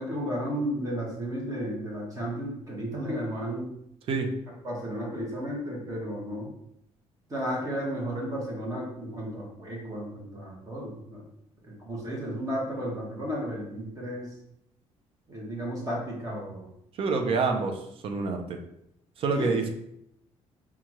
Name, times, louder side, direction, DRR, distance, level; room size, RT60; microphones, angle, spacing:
voice 1, 0.0-3.7 4.6-6.5 7.3-11.2 11.6-14.3 15.3-16.7 19.4-19.7, equal, 30° right, -3 dB, 1.1 m, -33 dB
voice 2, 17.0-18.6 19.2-19.7, right 4 dB, 50° right, 4 dB, 0.6 m, -27 dB
5.7 x 2.4 x 3.0 m, 0.76 s
cardioid pair, 135°, 12 cm